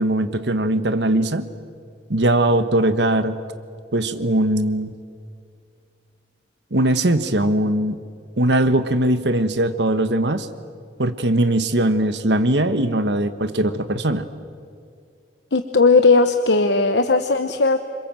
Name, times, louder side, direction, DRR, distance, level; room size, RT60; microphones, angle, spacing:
voice 1, 0.0-1.5 2.1-3.4 3.9-4.9 6.7-8.0 8.4-10.5 11.0-14.3, right 1 dB, 75° right, 10 dB, 1.4 m, -20 dB
voice 2, 15.5-17.8, left 3 dB, 80° left, 8 dB, 1.0 m, -17 dB
27.5 x 25.0 x 7.6 m, 2.3 s
head